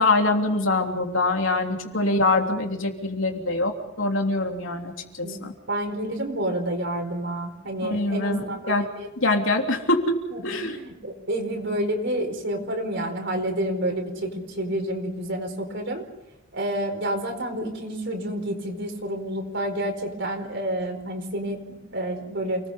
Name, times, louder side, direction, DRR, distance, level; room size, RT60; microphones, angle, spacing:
voice 1, 0.0-4.9 5.2-5.5 7.8-8.4 8.7-8.8 9.2-10.2 10.4-10.8, left 2 dB, 70° left, 3 dB, 3.3 m, -24 dB
voice 2, 1.9-2.3 5.2-9.1 10.3-16.0 16.5-22.6, right 1 dB, 60° right, 4 dB, 4.7 m, -29 dB
29.0 x 20.0 x 5.6 m, 0.93 s
head